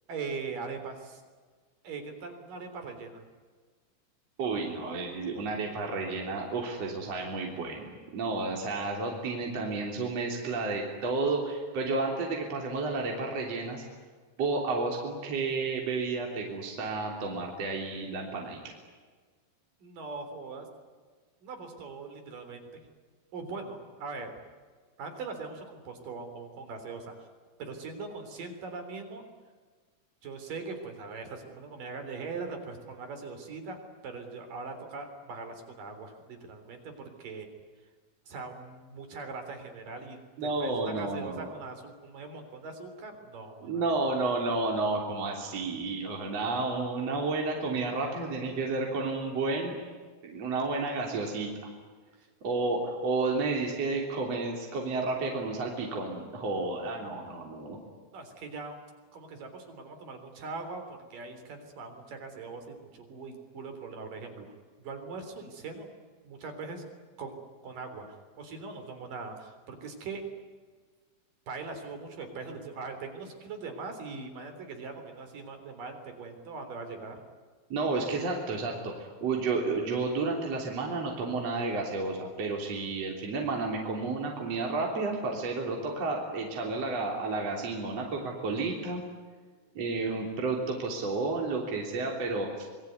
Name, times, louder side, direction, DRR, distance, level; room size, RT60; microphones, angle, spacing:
voice 1, 0.1-1.2 1.8-3.2 19.8-20.7 21.4-22.7 23.3-24.3 25.0-27.3 27.6-29.2 30.2-33.8 34.0-37.5 38.3-43.8 52.2-52.3 58.1-58.8 59.1-64.5 64.8-65.9 66.2-66.8 67.2-70.3 71.5-77.2, right 4 dB, 60° right, 7 dB, 5.2 m, -41 dB
voice 2, 4.4-13.8 14.4-18.7 40.4-41.5 43.6-49.8 50.2-51.5 52.4-57.8 77.7-89.0 89.8-92.7, right 3 dB, 45° right, 0 dB, 4.3 m, -31 dB
26.5 x 22.0 x 9.5 m, 1.5 s
omnidirectional pair, 4.3 m